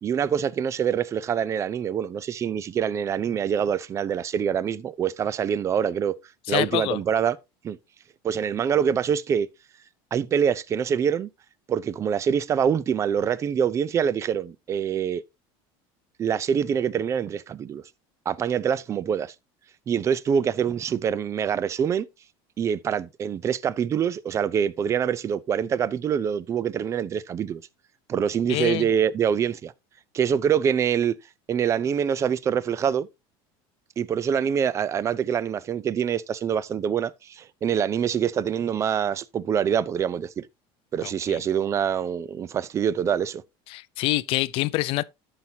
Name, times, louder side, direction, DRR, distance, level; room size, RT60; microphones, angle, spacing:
voice 1, 0.0-6.2 6.5-7.4 7.6-7.8 8.2-9.5 10.1-11.3 11.7-15.2 16.2-17.8 18.3-19.3 19.9-22.1 22.6-27.6 28.1-29.7 30.1-31.1 31.5-33.1 34.0-40.5 40.9-43.4, right 8 dB, 25° right, 0.4 m, -25 dB
voice 2, 6.5-7.0 28.5-28.9 41.3-41.4 43.7-45.0, left 18 dB, 50° left, 0.4 m, -25 dB
13.5 x 5.8 x 2.8 m
cardioid pair, 155°, 12 cm